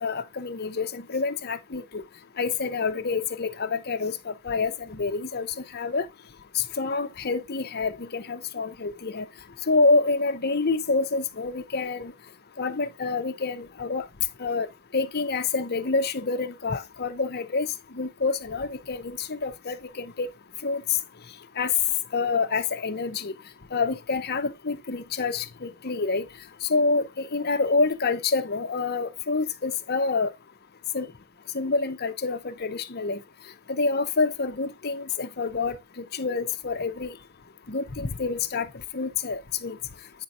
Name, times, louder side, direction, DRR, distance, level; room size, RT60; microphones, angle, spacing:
voice 1, 0.0-2.0 2.4-5.5 5.7-6.1 6.5-9.3 9.7-12.1 12.6-14.0 14.4-14.7 14.9-17.7 17.9-20.3 20.6-20.8 21.6-21.7 22.1-23.3 23.7-26.3 26.6-30.3 30.9-31.1 31.5-33.2 33.7-37.2 37.7-38.7 38.9-39.8, left 4 dB, 45° left, 0.8 m, -27 dB
8.9 x 5.8 x 2.6 m
head